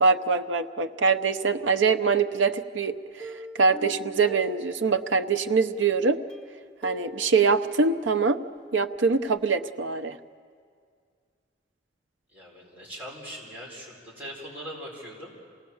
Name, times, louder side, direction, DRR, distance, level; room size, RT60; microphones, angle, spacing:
voice 1, 0.0-3.3 3.6-6.2 6.8-8.4 8.7-10.2, right 4 dB, 90° right, 9 dB, 0.8 m, -23 dB
Plucked string instrument, 3.2-5.2 5.8-8.6 8.9-9.0 9.4-9.5, right 1 dB, 5° left, 1.9 m, -44 dB
voice 2, 12.3-15.3, equal, 10° right, -5 dB, 4.4 m, -41 dB
27.5 x 18.0 x 7.2 m, 2.1 s
head